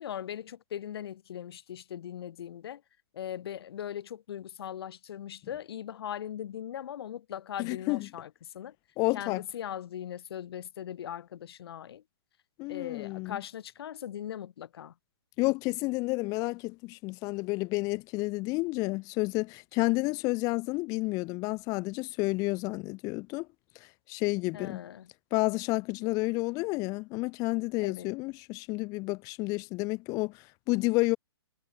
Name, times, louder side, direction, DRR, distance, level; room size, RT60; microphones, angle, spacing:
voice 1, 0.0-2.8 3.1-8.3 8.5-8.7 9.1-12.0 12.7-14.9 24.5-25.1 27.8-28.1, left 10 dB, 65° left, 1.9 m, -39 dB
voice 2, 7.6-8.1 9.0-9.4 12.6-13.4 15.4-23.5 24.1-24.8 25.3-31.2, left 24 dB, 25° left, 0.5 m, -30 dB
hypercardioid pair, 140°, 14 cm